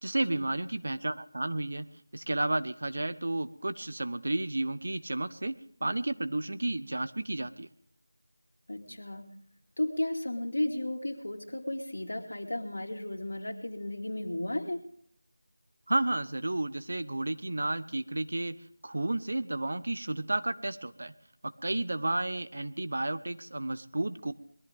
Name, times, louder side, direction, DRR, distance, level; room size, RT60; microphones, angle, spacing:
voice 1, 0.0-1.9 2.1-5.5 5.8-7.7 15.9-18.6 18.8-21.1 21.4-24.3, right 2 dB, 50° right, 13 dB, 0.8 m, -32 dB
voice 2, 8.7-9.3 9.8-14.8, left 1 dB, 75° left, 3 dB, 2.6 m, -34 dB
21.5 x 14.0 x 3.7 m, 0.64 s
figure-of-eight pair, 175°, 0 cm